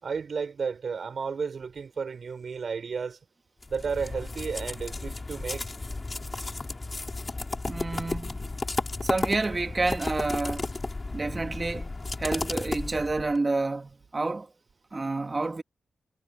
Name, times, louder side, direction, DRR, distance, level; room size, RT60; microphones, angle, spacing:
voice 1, 0.0-3.2 3.7-5.6, right 5 dB, 60° right, 6.4 m, -33 dB
sound 1, 3.6-13.4, left 3 dB, 30° left, 6.7 m, -33 dB
voice 2, 7.7-8.5 9.0-10.7 11.1-14.5 14.9-15.6, right 3 dB, 30° right, 2.7 m, -29 dB
cardioid pair, 75°, 0 cm